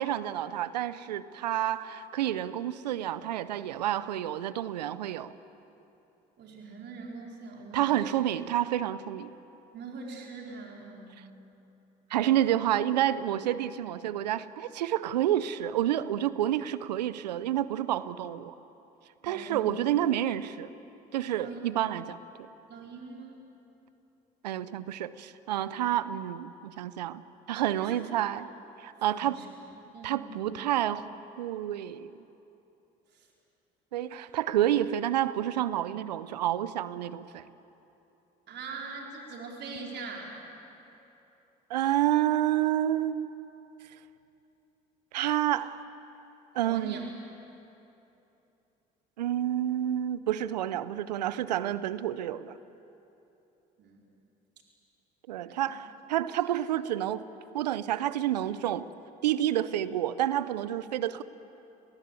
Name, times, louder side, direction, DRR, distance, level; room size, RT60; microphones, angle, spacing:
voice 1, 0.0-5.3 7.7-9.3 12.1-18.5 19.2-20.7 21.1-22.5 24.4-27.2 27.5-28.5 28.8-29.4 30.0-31.1 31.4-32.1 33.9-37.4 41.7-43.3 45.1-45.8 46.5-47.0 49.2-52.6 55.3-57.2 57.5-58.8 59.2-61.2, right 12 dB, 90° right, 16 dB, 0.6 m, -29 dB
voice 2, 6.4-8.1 9.7-11.2 19.2-20.0 21.3-21.6 22.7-23.4 27.8-28.0 29.1-29.5 29.9-30.5 33.1-33.3 38.5-40.4 46.6-47.1 53.8-54.0 56.4-56.6, right 4 dB, 55° right, -1 dB, 4.4 m, -42 dB
29.5 x 19.5 x 8.2 m, 2.9 s
hypercardioid pair, 60°, 21 cm